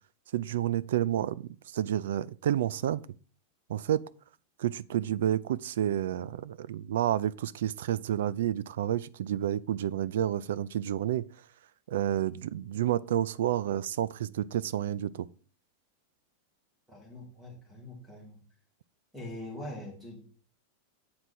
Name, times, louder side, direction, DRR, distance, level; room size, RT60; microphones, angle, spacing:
voice 1, 0.3-3.0 3.7-4.0 4.6-11.3 11.9-15.3, right 11 dB, 75° right, 0.3 m, -30 dB
voice 2, 16.9-18.4 19.1-20.2, left 1 dB, 5° right, 2.2 m, -43 dB
7.8 x 4.7 x 4.2 m
supercardioid pair, 170°, 0 cm